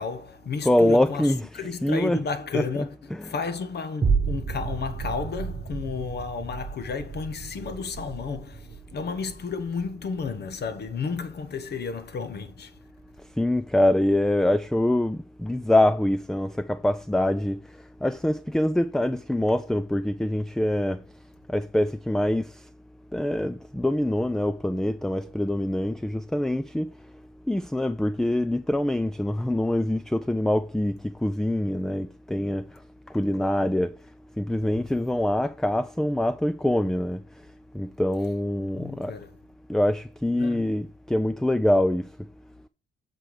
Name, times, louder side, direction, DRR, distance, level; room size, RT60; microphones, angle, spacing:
voice 1, 0.0-12.8 38.7-39.3 40.4-40.8, left 5 dB, 55° left, 1.3 m, -32 dB
voice 2, 0.7-2.2 2.5-2.7 3.1-3.4 13.4-17.6 18.0-21.0 21.5-22.5 23.1-26.9 27.5-32.6 33.1-33.9 34.4-37.2 37.7-39.1 39.7-42.1, left 1 dB, ahead, 0.3 m, -24 dB
sound 1, 4.0-12.6 13.0-13.1, right 5 dB, 30° right, 1.2 m, -32 dB
7.7 x 4.6 x 4.8 m
cardioid pair, 90°, 20 cm